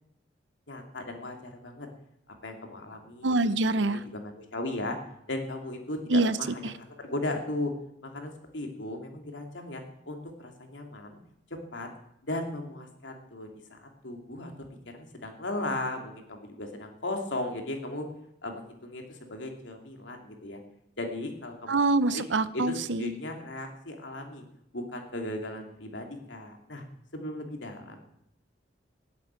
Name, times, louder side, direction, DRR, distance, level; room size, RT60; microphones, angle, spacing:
voice 1, 0.7-1.9 2.3-3.3 3.7-5.0 5.3-7.7 8.0-11.2 11.7-11.9 12.2-14.5 14.9-18.1 18.4-20.6 21.0-22.2 22.5-24.4 24.7-26.8 27.1-28.0, left 1 dB, 80° left, 3 dB, 2.8 m, -37 dB
voice 2, 3.2-4.0 6.1-6.3 21.7-23.1, right 2 dB, 75° right, 14 dB, 0.8 m, -25 dB
18.0 x 8.3 x 8.9 m, 0.80 s
head